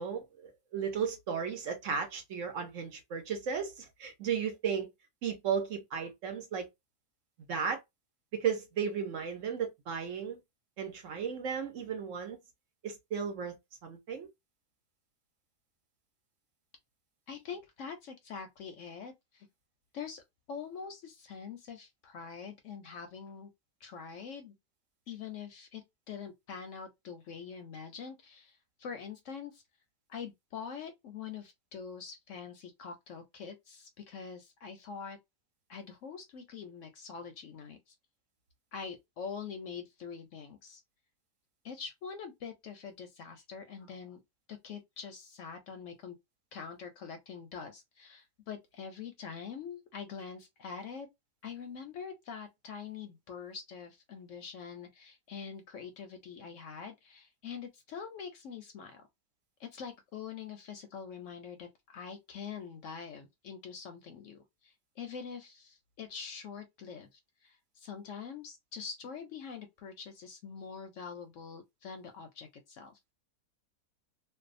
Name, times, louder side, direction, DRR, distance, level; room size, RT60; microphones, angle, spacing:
voice 1, 0.0-4.9 5.2-6.7 7.5-7.8 8.3-10.4 10.8-12.4 12.8-13.5 13.8-14.3, right 7 dB, 60° right, 0.9 m, -35 dB
voice 2, 17.3-19.5 19.9-20.2 20.5-23.5 23.8-24.5 25.1-29.6 30.1-35.2 35.7-38.0 38.7-40.8 41.6-44.2 44.5-46.2 46.5-51.1 51.4-59.0 59.6-73.1, left 6 dB, 70° left, 0.8 m, -44 dB
2.6 x 2.2 x 2.4 m
omnidirectional pair, 1.6 m